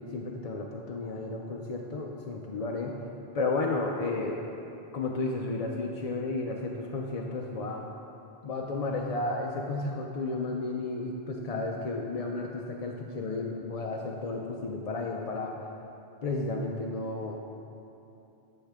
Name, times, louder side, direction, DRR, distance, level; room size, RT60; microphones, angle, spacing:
voice 1, 0.0-3.0 3.3-4.4 4.9-7.8 8.4-15.5 16.2-17.4, left 3 dB, 45° left, 0 dB, 0.6 m, -33 dB
13.5 x 6.4 x 3.5 m, 2.8 s
omnidirectional pair, 1.1 m